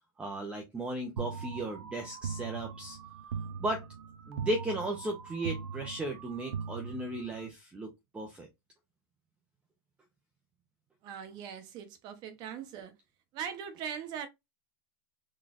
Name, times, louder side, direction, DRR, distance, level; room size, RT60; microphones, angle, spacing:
voice 1, 0.2-3.0 3.6-3.9 4.3-8.5, right 1 dB, 10° right, 0.7 m, -36 dB
sound 1, 1.2-7.5, right 6 dB, 85° right, 0.8 m, -40 dB
voice 2, 11.0-12.9 13.3-14.3, right 8 dB, 35° right, 0.9 m, -40 dB
4.1 x 3.1 x 2.5 m
supercardioid pair, 150°, 12 cm